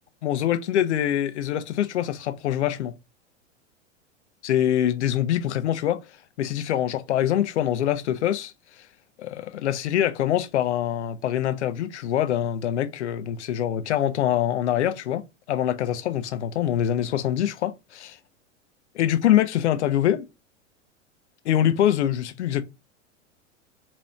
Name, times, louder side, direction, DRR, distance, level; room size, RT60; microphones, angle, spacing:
voice 1, 0.2-2.9 4.4-6.0 6.4-8.5 9.2-18.2 18.9-20.3 21.4-22.6, left 11 dB, 65° left, 0.7 m, -24 dB
4.1 x 3.0 x 2.3 m
figure-of-eight pair, 95°, 38 cm